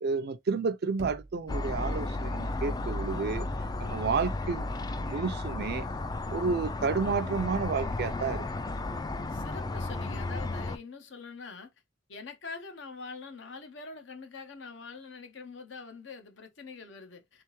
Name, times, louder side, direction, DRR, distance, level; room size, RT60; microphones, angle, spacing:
voice 1, 0.0-3.4 3.8-4.7 5.0-5.9 6.3-8.4, right 5 dB, 55° right, 0.4 m, -31 dB
Knock, 1.0-1.9, right 2 dB, 80° right, 0.9 m, -45 dB
sound 1, 1.5-10.8, left 2 dB, 20° left, 0.3 m, -33 dB
voice 2, 9.3-11.7 12.1-17.4, left 4 dB, 65° left, 0.8 m, -44 dB
3.6 x 3.4 x 3.0 m
head